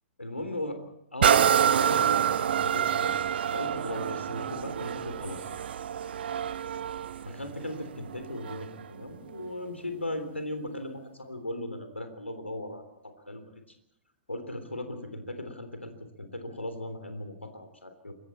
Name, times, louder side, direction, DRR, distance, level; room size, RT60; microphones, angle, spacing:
voice 1, 0.2-0.8 1.1-3.1 3.5-5.4 7.3-13.6 14.3-15.9 16.2-18.1, left 1 dB, 85° left, 8 dB, 3.5 m, -37 dB
sound 1, 1.2-8.8 9.4-9.5, right 9 dB, 55° right, 0.8 m, -27 dB
27.5 x 23.0 x 4.4 m, 0.78 s
figure-of-eight pair, 110°, 6 cm